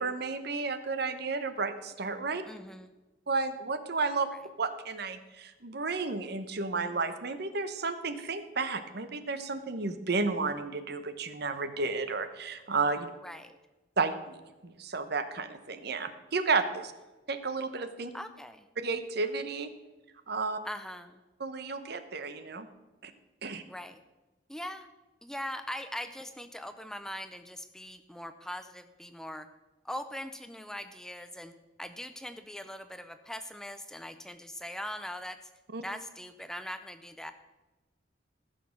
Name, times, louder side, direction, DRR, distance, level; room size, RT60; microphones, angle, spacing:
voice 1, 0.0-2.4 3.3-4.3 4.6-13.1 14.0-16.9 17.3-18.1 18.8-19.7 20.3-20.6 21.4-22.7 23.0-23.1 23.4-23.6 35.7-35.8, right 4 dB, 60° right, 10 dB, 0.9 m, -32 dB
voice 2, 2.5-2.9 13.2-13.6 18.1-18.7 20.6-21.2 23.7-24.0 24.5-24.9 25.2-29.5 29.8-31.5 31.8-35.5 35.8-37.3, left 1 dB, 5° left, 10 dB, 0.5 m, -41 dB
15.0 x 6.5 x 5.8 m, 1.1 s
head